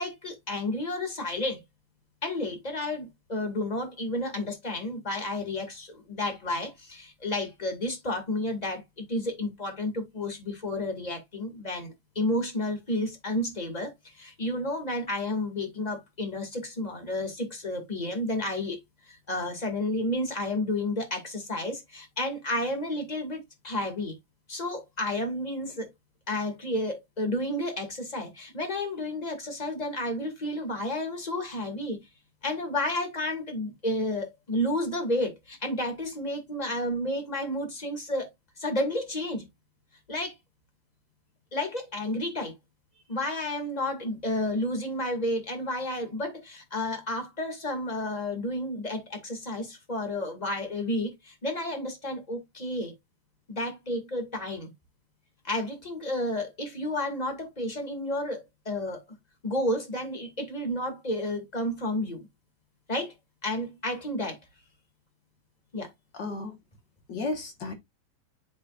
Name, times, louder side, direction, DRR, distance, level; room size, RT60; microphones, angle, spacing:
voice 1, 0.0-1.6 2.2-18.8 19.0-24.1 24.5-25.9 26.3-32.0 32.4-38.3 38.6-39.4 40.1-40.3 41.5-42.5 43.1-52.9 53.5-54.7 55.4-59.0 59.4-62.2 62.9-63.1 63.4-64.4 65.7-65.9, left 1 dB, 15° left, 1.6 m, -31 dB
voice 2, 66.1-66.6 67.1-67.7, left 3 dB, 50° left, 1.4 m, -33 dB
9.3 x 5.4 x 2.5 m
omnidirectional pair, 4.1 m